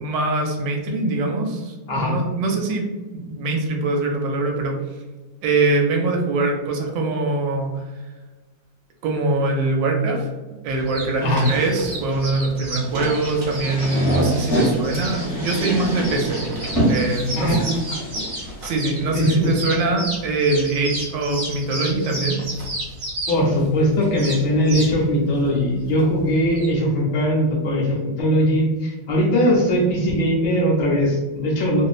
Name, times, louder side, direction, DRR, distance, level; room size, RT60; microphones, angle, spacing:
voice 1, 0.0-2.8 3.1-4.7 5.4-7.9 9.0-10.3 10.6-16.4 16.8-17.7 18.6-22.4, right 2 dB, 75° right, 1 dB, 1.2 m, -23 dB
sound 1, 10.7-26.7, right 1 dB, 60° right, 1.0 m, -32 dB
sound 2, 12.9-19.0, equal, 25° left, 0.5 m, -26 dB
voice 2, 17.4-17.7 19.1-19.5 23.3-31.9, equal, 70° left, -2 dB, 1.2 m, -20 dB
3.2 x 2.0 x 2.3 m, 1.2 s
omnidirectional pair, 2.1 m